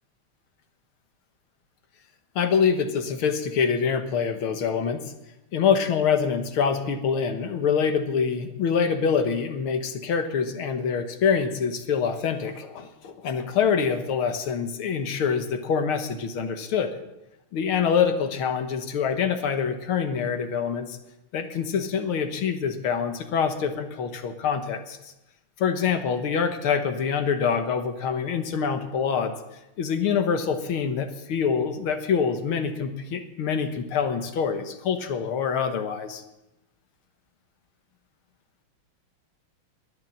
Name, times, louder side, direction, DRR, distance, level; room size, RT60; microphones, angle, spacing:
voice 1, 2.4-5.0 5.5-17.0 17.5-20.9 21.3-25.1 25.6-29.3 29.8-36.2, left 6 dB, 80° left, 8 dB, 2.1 m, -25 dB
21.5 x 7.6 x 7.6 m, 0.93 s
omnidirectional pair, 2.3 m